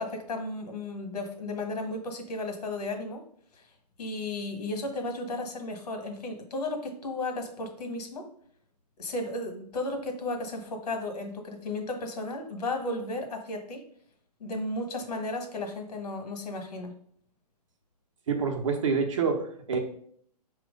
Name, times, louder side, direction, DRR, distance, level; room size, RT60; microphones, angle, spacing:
voice 1, 0.0-3.2 3.6-3.7 4.0-8.3 9.0-13.8 14.4-16.9, left 2 dB, 70° left, 5 dB, 1.6 m, -34 dB
voice 2, 18.3-19.8, right 5 dB, 50° right, 4 dB, 1.0 m, -27 dB
5.9 x 3.1 x 5.2 m, 0.63 s
hypercardioid pair, 170°, 21 cm